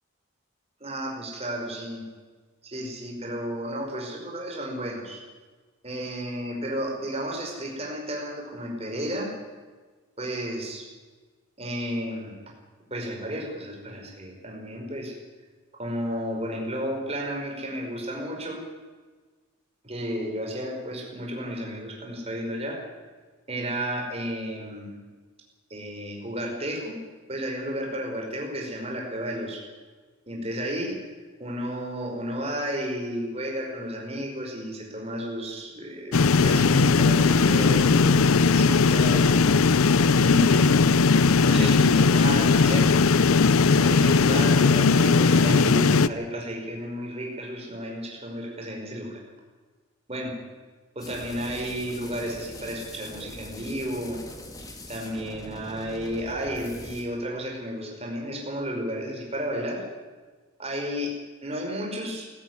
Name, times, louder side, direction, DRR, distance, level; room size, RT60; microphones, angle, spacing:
voice 1, 0.8-2.1 2.6-5.2 5.8-9.3 10.2-10.9 11.6-12.4 12.9-15.1 15.8-18.6 19.8-22.8 23.5-25.0 25.7-27.0 27.3-29.6 30.3-31.0 31.4-39.9 40.2-40.8 41.4-42.9 43.8-49.2 50.1-50.3 50.9-54.2 54.9-59.8 60.6-61.1 61.4-62.3, equal, 30° right, 0 dB, 5.1 m, -32 dB
sound 1, 36.1-46.1, left 4 dB, 85° left, 0.6 m, -19 dB
sound 2, 51.0-57.0, left 1 dB, 15° left, 2.3 m, -42 dB
19.0 x 14.0 x 9.7 m, 1.4 s
head